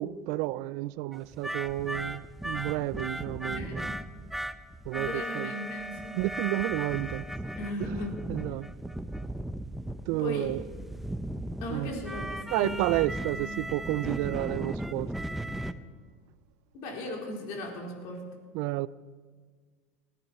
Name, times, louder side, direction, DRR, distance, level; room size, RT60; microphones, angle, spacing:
voice 1, 0.0-3.9 4.8-5.5 6.2-7.3 7.8-8.0 8.3-8.7 10.1-10.6 11.7-11.9 12.5-15.1 18.5-18.9, right 17 dB, 65° right, 0.4 m, -31 dB
sound 1, 1.1-15.7, right 1 dB, 5° right, 0.7 m, -36 dB
voice 2, 3.4-4.0 4.9-6.2 7.6-8.2 10.2-10.5 11.6-13.1 13.3-13.7 16.7-18.2, left 2 dB, 65° left, 4.1 m, -37 dB
20.0 x 13.5 x 4.3 m
supercardioid pair, 95°, 6 cm